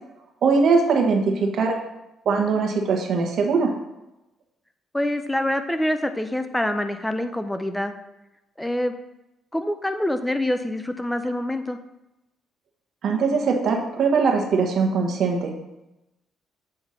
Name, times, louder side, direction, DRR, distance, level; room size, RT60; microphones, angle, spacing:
voice 1, 0.4-1.8 2.2-3.7 13.0-15.6, right 4 dB, 65° right, 2 dB, 1.3 m, -21 dB
voice 2, 1.2-1.6 4.9-7.9 8.6-9.0 9.5-11.8, left 1 dB, 5° left, 8 dB, 0.5 m, -26 dB
7.7 x 3.5 x 5.7 m, 0.94 s
cardioid pair, 90°, 0 cm